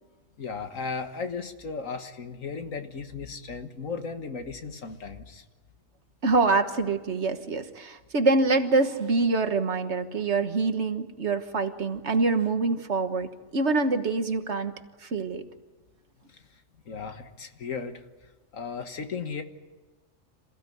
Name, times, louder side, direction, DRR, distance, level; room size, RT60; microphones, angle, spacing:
voice 1, 0.4-5.4 16.3-16.4 16.9-18.0 18.5-19.4, left 5 dB, 90° left, 7 dB, 2.0 m, -36 dB
voice 2, 6.2-14.7 15.0-15.4, right 3 dB, 60° right, 8 dB, 1.7 m, -25 dB
27.5 x 16.0 x 9.4 m, 1.3 s
omnidirectional pair, 1.3 m